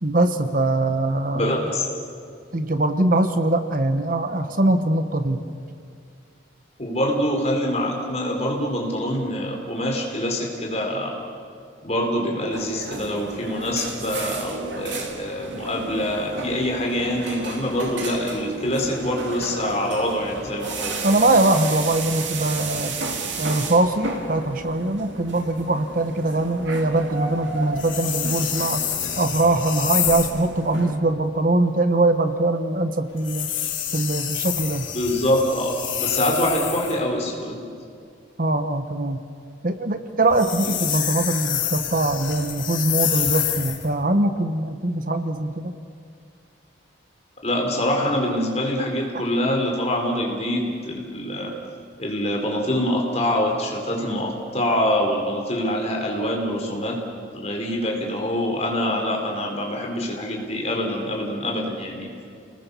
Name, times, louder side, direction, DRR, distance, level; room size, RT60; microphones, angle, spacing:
voice 1, 0.0-1.7 2.5-5.4 21.0-22.9 23.4-28.8 29.2-33.5 33.9-34.9 38.4-39.2 39.6-45.7, right 2 dB, 45° right, 9 dB, 1.0 m, -22 dB
voice 2, 1.3-1.9 6.8-11.2 11.8-21.0 34.9-37.6 47.4-51.5 52.0-57.0 57.3-62.1, left 1 dB, 35° left, 1 dB, 4.4 m, -25 dB
sound 1, 12.5-31.0, right 3 dB, 70° right, 2.8 m, -33 dB
sound 2, 27.8-30.4 33.2-37.0 40.2-43.9, left 10 dB, 80° left, 2.8 m, -27 dB
29.5 x 20.0 x 7.0 m, 2.3 s
head